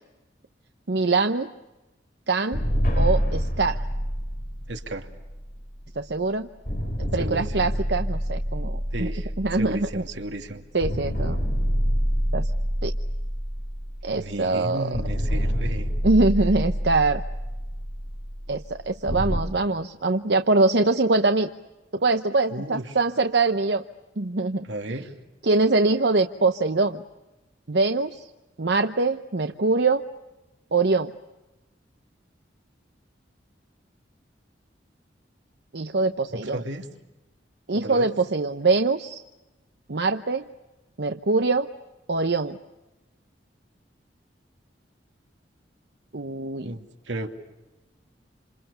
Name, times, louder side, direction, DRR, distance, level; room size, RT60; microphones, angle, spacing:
voice 1, 0.9-1.5 2.3-2.6 3.0-3.8 6.0-6.5 7.0-9.1 9.4-10.0 10.7-11.4 12.3-12.5 12.8-12.9 14.0-15.0 16.0-17.2 18.5-21.5 21.9-23.8 24.2-25.0 25.4-27.0 27.7-28.3 28.6-30.0 30.7-31.1 35.7-36.6 37.7-39.2 39.9-40.4 41.0-41.7 42.1-42.6 46.1-46.7, right 3 dB, 65° right, 7 dB, 0.9 m, -23 dB
sound 1, 2.5-6.1 6.7-10.5 10.8-14.4 14.9-19.4, equal, 50° left, 6.0 m, -27 dB
voice 2, 4.7-5.1 7.2-7.7 8.9-10.6 14.1-15.9 22.5-23.0 24.6-25.1 36.3-36.9 37.7-38.1 46.6-47.3, right 1 dB, 85° right, 4 dB, 2.5 m, -34 dB
28.5 x 27.0 x 6.9 m, 1.1 s
head